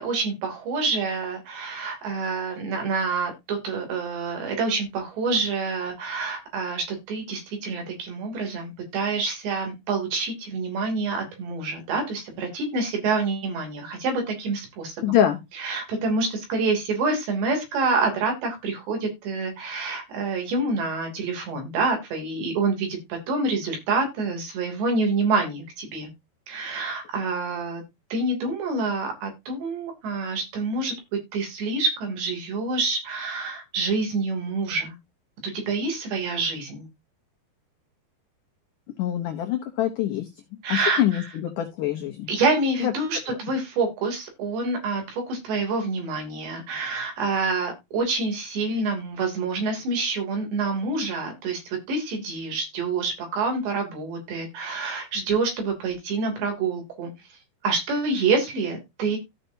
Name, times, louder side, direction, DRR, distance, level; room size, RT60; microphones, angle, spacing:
voice 1, 0.0-15.1 15.6-26.1 26.5-27.8 28.1-30.9 31.3-35.0 35.4-36.9 40.6-41.3 42.3-57.1 57.6-59.2, right 3 dB, 70° right, 3 dB, 5.1 m, -27 dB
voice 2, 15.0-15.4 39.0-40.3 40.7-42.3 42.8-42.9, left 11 dB, 85° left, 4 dB, 1.8 m, -24 dB
14.5 x 5.7 x 2.7 m, 0.22 s
omnidirectional pair, 5.3 m